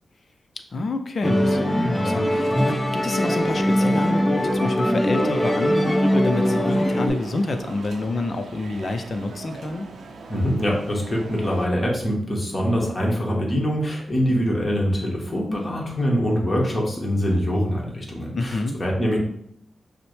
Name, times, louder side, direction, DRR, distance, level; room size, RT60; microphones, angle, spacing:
voice 1, 0.7-9.9 18.3-18.8, left 2 dB, 50° left, 7 dB, 0.5 m, -28 dB
Musical instrument, 1.2-7.1, equal, 5° left, 0.7 m, -21 dB
sound 1, 5.6-11.7, right 4 dB, 75° right, 0.5 m, -41 dB
voice 2, 10.3-19.2, equal, 25° left, -2 dB, 1.3 m, -24 dB
5.8 x 2.1 x 3.2 m, 0.69 s
cardioid pair, 90°, 0 cm